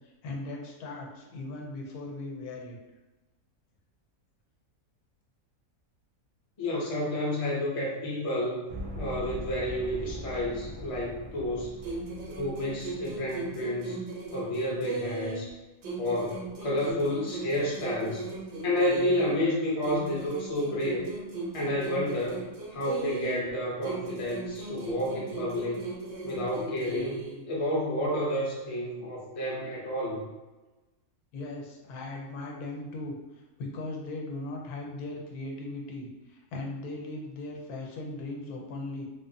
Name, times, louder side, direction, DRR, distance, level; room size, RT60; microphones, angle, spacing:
voice 1, 0.0-2.8 31.3-39.1, left 2 dB, 85° left, 0 dB, 1.1 m, -38 dB
voice 2, 6.6-8.6 8.9-11.7 12.3-14.0 14.3-15.5 16.0-18.2 18.6-21.1 21.5-22.4 22.7-25.8 26.2-27.2 27.5-30.2, left 1 dB, 35° left, -4 dB, 0.5 m, -30 dB
sound 1, 8.7-13.5, equal, 85° right, 1.1 m, -41 dB
sound 2, 11.8-15.5 15.8-19.5 19.8-23.5 23.8-27.5, right 3 dB, 65° right, 0.7 m, -38 dB
3.4 x 2.0 x 2.6 m, 1.1 s
omnidirectional pair, 1.6 m